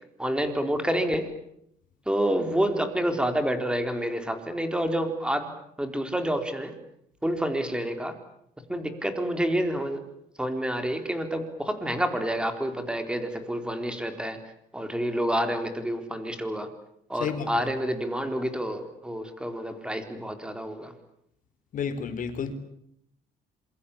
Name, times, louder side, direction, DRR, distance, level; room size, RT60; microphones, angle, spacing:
voice 1, 0.2-1.3 2.1-5.5 5.8-6.7 7.2-8.1 8.7-10.0 10.4-14.4 14.7-16.7 17.1-20.9, equal, 5° right, 7 dB, 4.2 m, -28 dB
voice 2, 17.2-17.7 21.7-22.5, left 6 dB, 50° left, 10 dB, 4.1 m, -31 dB
27.0 x 23.0 x 8.7 m, 0.74 s
cardioid pair, 110°, 17 cm